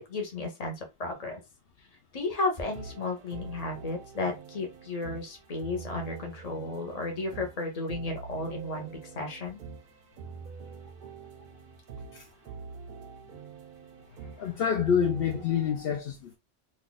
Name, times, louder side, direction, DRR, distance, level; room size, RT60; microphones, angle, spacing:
voice 1, 0.0-1.4 2.1-9.6 15.3-15.5, left 2 dB, 40° left, 1.0 m, -33 dB
sound 1, 2.6-15.5, right 5 dB, 55° right, 0.6 m, -45 dB
voice 2, 14.2-16.4, left 7 dB, 65° left, 0.8 m, -28 dB
2.6 x 2.5 x 3.8 m
omnidirectional pair, 1.1 m